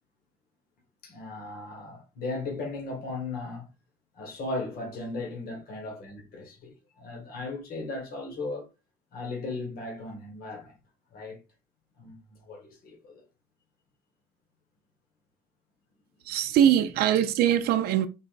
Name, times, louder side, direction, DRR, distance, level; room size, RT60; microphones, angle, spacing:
voice 1, 1.0-3.7 4.1-8.7 9.1-10.8 11.1-11.4 12.0-13.2, left 2 dB, 60° left, 1.5 m, -37 dB
voice 2, 16.2-18.1, right 10 dB, 65° right, 0.4 m, -22 dB
4.0 x 2.2 x 3.9 m
cardioid pair, 110°, 17 cm